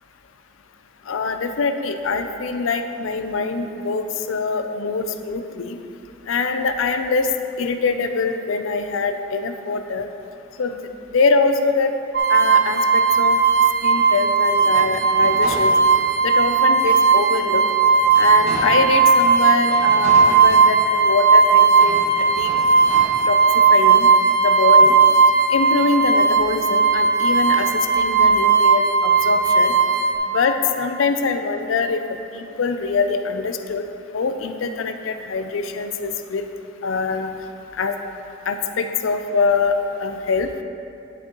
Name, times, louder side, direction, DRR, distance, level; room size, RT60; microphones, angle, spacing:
voice 1, 1.1-5.8 6.3-7.3 7.6-10.1 10.6-10.7 11.1-11.9 12.3-13.4 13.8-15.7 16.2-17.6 18.2-22.1 22.4-22.5 23.3-23.4 23.7-24.1 24.4-24.9 25.5-27.7 28.0-29.7 30.3-32.0 32.3-33.8 34.1-36.4 36.8-37.3 37.8-37.9 38.5-39.7 40.0-40.5, left 4 dB, 85° left, 7 dB, 0.5 m, -23 dB
sound 1, 12.1-30.1, right 5 dB, 55° right, 0.6 m, -16 dB
sound 2, 14.6-16.2 16.7-16.8 17.3-19.0 19.6-21.1 21.7-23.0, right 1 dB, 90° right, 1.8 m, -34 dB
10.5 x 7.0 x 3.0 m, 2.7 s
head